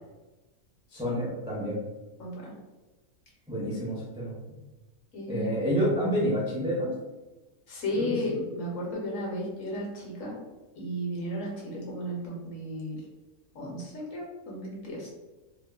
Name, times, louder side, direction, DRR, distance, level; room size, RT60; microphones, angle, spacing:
voice 1, 0.9-1.8 3.5-4.4 5.3-6.9 7.9-8.2, equal, 5° right, -6 dB, 0.3 m, -28 dB
voice 2, 2.2-2.5 5.1-5.6 7.7-10.4 10.8-13.0 13.5-15.2, equal, 70° left, -3 dB, 1.1 m, -34 dB
2.9 x 2.2 x 2.3 m, 1.2 s
omnidirectional pair, 1.4 m